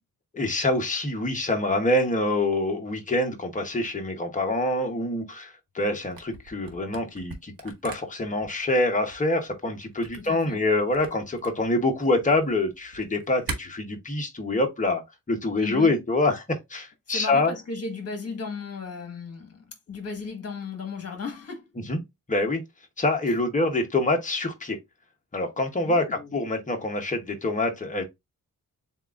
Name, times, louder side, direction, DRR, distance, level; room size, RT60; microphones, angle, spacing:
voice 1, 0.3-17.5 21.9-22.0 22.3-22.6 23.0-24.8 25.3-28.0, left 2 dB, 25° left, 0.9 m, -26 dB
Camera, 6.0-13.6, right 3 dB, 90° right, 1.2 m, -41 dB
voice 2, 10.1-10.6 15.6-15.9 17.1-21.6 25.8-26.3, left 4 dB, 45° left, 1.5 m, -35 dB
7.3 x 2.4 x 2.4 m
wide cardioid pair, 165°, 33 cm